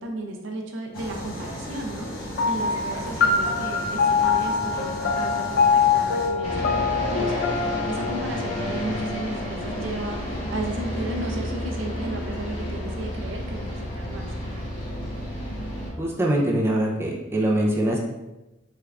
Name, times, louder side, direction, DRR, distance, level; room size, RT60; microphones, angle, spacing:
voice 1, 0.0-14.3, right 2 dB, 70° right, 2 dB, 0.5 m, -34 dB
sound 1, 0.9-6.3, equal, 85° left, 0.9 m, -35 dB
sound 2, 2.4-11.2, left 5 dB, 55° left, 0.4 m, -25 dB
sound 3, 6.4-15.9, left 1 dB, 35° left, 1.2 m, -31 dB
voice 2, 16.0-18.0, right 1 dB, 15° right, -3 dB, 0.5 m, -23 dB
3.4 x 2.4 x 3.2 m, 1.0 s
head